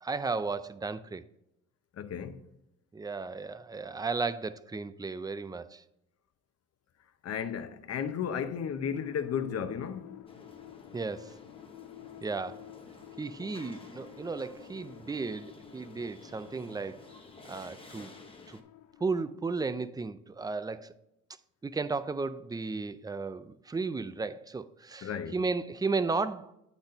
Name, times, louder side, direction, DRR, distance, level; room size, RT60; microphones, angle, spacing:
voice 1, 0.0-1.2 2.9-5.8 10.9-11.4 12.2-12.6 13.2-17.0 17.4-18.1 18.5-18.6 19.0-20.9 21.6-26.5, right 4 dB, 15° right, 0.4 m, -34 dB
voice 2, 1.9-2.5 7.2-10.2 25.0-25.4, left 7 dB, 55° left, 0.8 m, -34 dB
sound 1, 8.9-19.0, left 14 dB, 90° left, 0.6 m, -51 dB
sound 2, 10.3-18.6, left 2 dB, 20° left, 1.0 m, -52 dB
8.6 x 4.1 x 5.2 m
cardioid pair, 90°, 30 cm